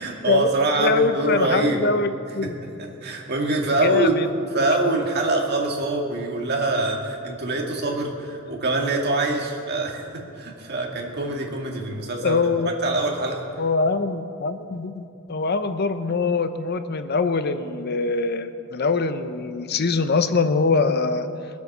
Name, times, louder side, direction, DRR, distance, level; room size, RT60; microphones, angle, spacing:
voice 1, 0.0-1.8 2.4-4.1 4.5-12.4 12.8-13.4, right 2 dB, 50° right, 0 dB, 2.1 m, -24 dB
voice 2, 0.8-2.6 3.8-4.3 4.6-4.8 12.2-12.7 13.6-21.3, left 4 dB, 50° left, 10 dB, 0.7 m, -23 dB
22.0 x 8.2 x 6.7 m, 2.6 s
head